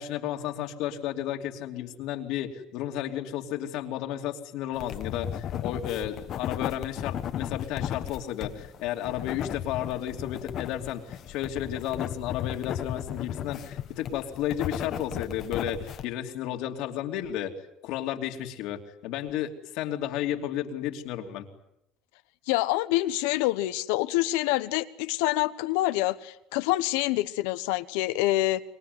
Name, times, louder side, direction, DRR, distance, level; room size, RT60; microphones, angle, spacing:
voice 1, 0.0-17.5 17.8-21.5, left 11 dB, 70° left, 2.9 m, -33 dB
sound 1, 4.7-16.0, left 10 dB, 50° left, 1.5 m, -35 dB
voice 2, 22.5-28.6, left 17 dB, 85° left, 1.0 m, -26 dB
25.5 x 22.0 x 9.6 m
supercardioid pair, 110°, 0 cm